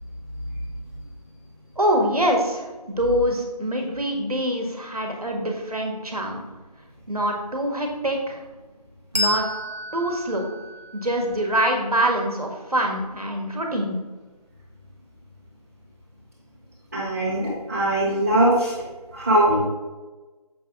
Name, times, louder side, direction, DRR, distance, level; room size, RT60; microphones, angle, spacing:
voice 1, 1.8-6.4 7.1-8.4 9.1-9.4 9.9-10.5 10.9-14.0, right 1 dB, 70° right, 2 dB, 1.7 m, -24 dB
Bell, 9.1-12.2, equal, 85° right, 1.6 m, -31 dB
voice 2, 16.9-18.7 19.1-19.6, right 1 dB, 25° right, -9 dB, 1.2 m, -21 dB
7.4 x 5.4 x 3.6 m, 1.2 s
figure-of-eight pair, 160°, 20 cm